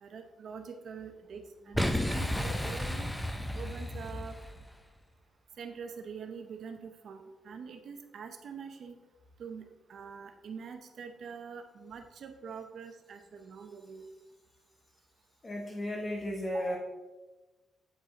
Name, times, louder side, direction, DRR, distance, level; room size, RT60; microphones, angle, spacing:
voice 1, 0.0-3.1 3.5-4.3 5.6-9.0 9.4-14.0 16.5-16.8, right 6 dB, 60° right, 6 dB, 0.6 m, -44 dB
Boom, 1.7-4.7, left 1 dB, 5° left, 0.5 m, -33 dB
voice 2, 15.4-16.8, left 1 dB, 25° left, 0 dB, 1.0 m, -34 dB
8.5 x 5.3 x 4.0 m, 1.1 s
cardioid pair, 125°, 0 cm